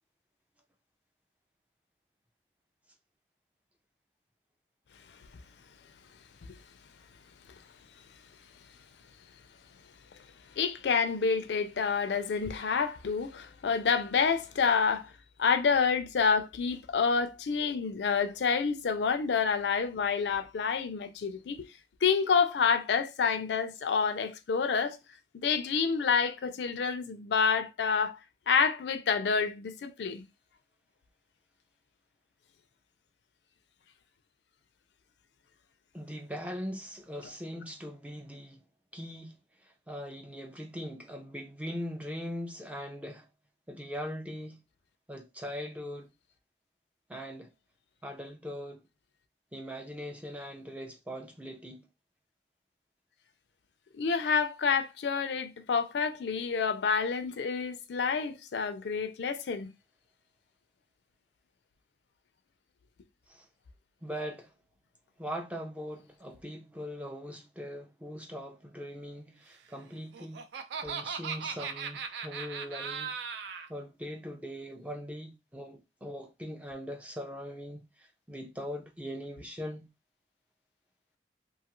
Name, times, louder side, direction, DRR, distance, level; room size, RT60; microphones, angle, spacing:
voice 1, 10.6-15.1 15.4-21.7 22.0-25.0 25.4-28.2 28.5-30.2 54.0-59.7, left 5 dB, 75° left, 0.4 m, -28 dB
voice 2, 35.9-38.6 38.9-43.3 43.7-44.6 45.1-46.1 47.1-47.5 48.0-48.8 49.5-51.8 63.3-63.5 64.0-64.5 65.2-70.5 70.8-73.1 73.7-79.9, equal, 10° right, 0.4 m, -41 dB
Laughter, 69.9-73.7, right 6 dB, 75° right, 0.4 m, -38 dB
2.7 x 2.4 x 2.9 m
head